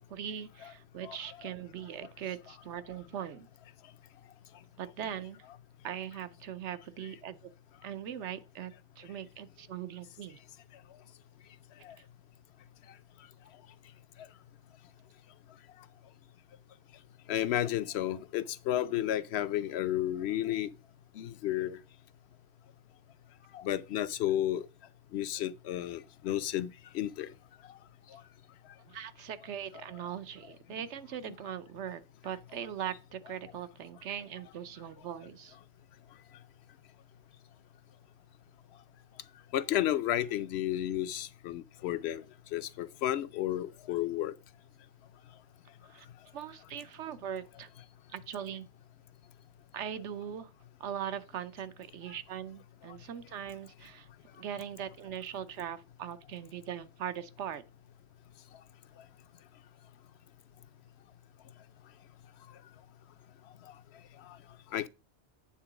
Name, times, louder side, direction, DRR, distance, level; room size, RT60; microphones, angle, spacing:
voice 1, 0.1-3.5 4.8-5.4 5.8-7.4 7.8-10.4 28.8-35.6 45.8-46.1 46.3-47.7 48.1-48.7 49.7-50.5 50.8-54.1 54.4-57.6, right 9 dB, 85° right, 1.0 m, -40 dB
voice 2, 17.3-20.7 21.2-21.8 23.5-24.6 25.1-26.7 26.9-27.3 39.5-42.2 42.5-44.3 64.7-64.9, left 12 dB, 70° left, 0.8 m, -32 dB
8.8 x 3.8 x 5.9 m
omnidirectional pair, 1.2 m